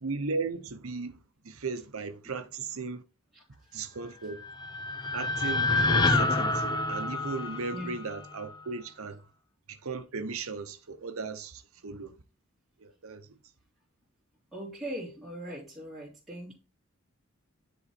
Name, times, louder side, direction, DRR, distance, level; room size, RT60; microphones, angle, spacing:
voice 1, 0.0-1.2 1.4-3.0 3.7-4.4 5.1-9.2 9.7-12.1 12.8-13.3, right 4 dB, 75° right, 0.8 m, -36 dB
voice 2, 3.3-3.8 7.7-8.0 14.5-16.5, equal, ahead, 2.5 m, -40 dB
sound 1, 4.2-8.5, left 2 dB, 20° left, 0.6 m, -28 dB
9.9 x 3.9 x 4.2 m
head